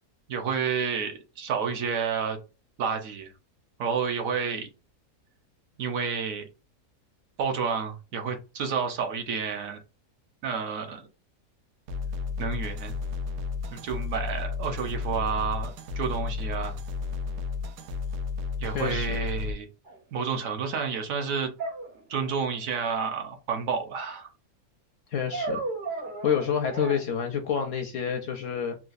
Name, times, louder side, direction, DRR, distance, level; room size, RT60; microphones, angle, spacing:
voice 1, 0.3-2.4 2.8-3.3 3.8-4.7 5.8-6.5 7.4-9.8 10.4-11.0 12.4-12.9 13.7-16.8 18.6-19.7 20.1-21.5 22.1-24.3, right 6 dB, 65° right, 1.0 m, -30 dB
sound 1, 11.9-19.5, left 5 dB, 90° right, 1.2 m, -33 dB
voice 2, 18.7-19.2 25.1-25.6 26.2-28.8, left 7 dB, 70° left, 0.8 m, -28 dB
sound 2, 19.8-20.0 21.6-22.5 25.3-27.0, right 3 dB, 40° right, 0.8 m, -34 dB
3.9 x 2.3 x 2.5 m
omnidirectional pair, 1.7 m